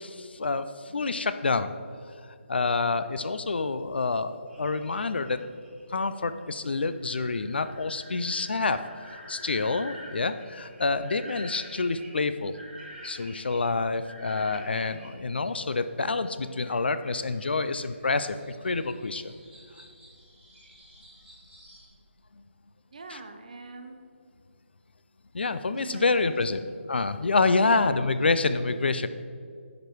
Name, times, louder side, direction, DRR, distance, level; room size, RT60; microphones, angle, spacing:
voice 1, 0.0-1.7 2.5-5.4 5.9-12.6 13.0-19.3 23.1-23.2 25.3-26.6 26.9-29.1, left 3 dB, 55° left, 12 dB, 0.4 m, -27 dB
sound 1, 4.5-15.1 16.7-21.9, equal, 5° right, 1.6 m, -49 dB
voice 2, 22.9-24.0 25.8-26.7 27.7-28.1, right 3 dB, 35° right, 6 dB, 0.6 m, -43 dB
10.5 x 5.1 x 4.6 m, 2.2 s
hypercardioid pair, 180°, 7 cm